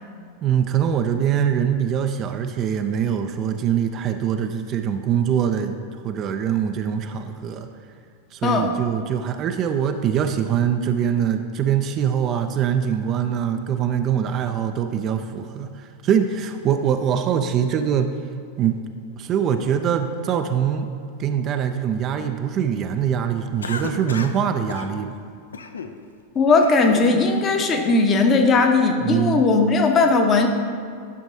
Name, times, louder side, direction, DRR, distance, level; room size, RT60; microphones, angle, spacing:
voice 1, 0.4-5.8 6.0-7.7 8.3-18.1 18.6-18.8 19.2-20.9 21.2-25.2 29.0-29.4, right 8 dB, 35° right, 7 dB, 0.4 m, -23 dB
voice 2, 8.4-8.7 26.3-30.5, left 3 dB, 25° left, 4 dB, 0.8 m, -18 dB
Cough, 23.6-24.4 24.7-24.9 25.5-25.9 26.4-27.1, left 4 dB, 70° left, 0.4 m, -32 dB
11.0 x 6.2 x 2.7 m, 2.3 s
figure-of-eight pair, 90°, 0 cm